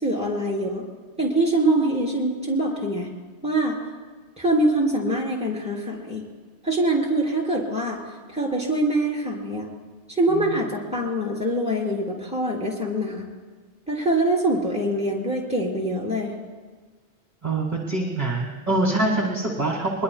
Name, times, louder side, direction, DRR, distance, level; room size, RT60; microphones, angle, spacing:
voice 1, 0.0-0.8 1.2-3.1 3.4-3.8 4.4-6.2 6.6-8.0 8.3-9.7 10.2-13.3 13.9-16.3, right 1 dB, 5° right, -3 dB, 3.6 m, -24 dB
voice 2, 17.4-20.0, right 2 dB, 40° right, -2 dB, 1.8 m, -25 dB
23.0 x 21.0 x 2.3 m, 1.4 s
omnidirectional pair, 1.2 m